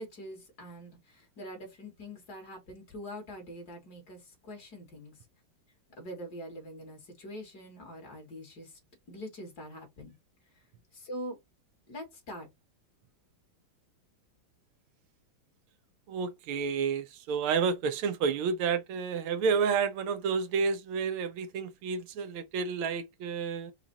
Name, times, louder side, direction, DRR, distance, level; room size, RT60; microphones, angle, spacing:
voice 1, 0.0-5.1 6.0-8.8 9.1-10.1 10.9-11.4 11.9-12.5, equal, 50° left, 2.2 m, -44 dB
voice 2, 16.1-23.7, right 5 dB, 80° right, 1.5 m, -30 dB
4.9 x 2.4 x 4.0 m
omnidirectional pair, 2.4 m